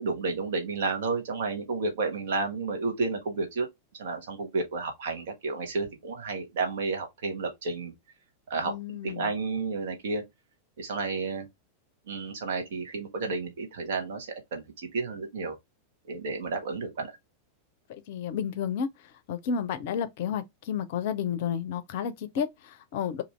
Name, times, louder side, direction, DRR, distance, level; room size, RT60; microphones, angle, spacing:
voice 1, 0.0-3.7 4.0-7.9 8.5-8.8 9.0-10.2 10.8-11.5 12.1-15.6 16.1-17.1, right 4 dB, 55° right, 1.1 m, -31 dB
voice 2, 8.7-9.3 17.9-18.9 19.3-23.2, left 7 dB, 50° left, 0.5 m, -31 dB
2.6 x 2.6 x 4.2 m
figure-of-eight pair, 90°, 0 cm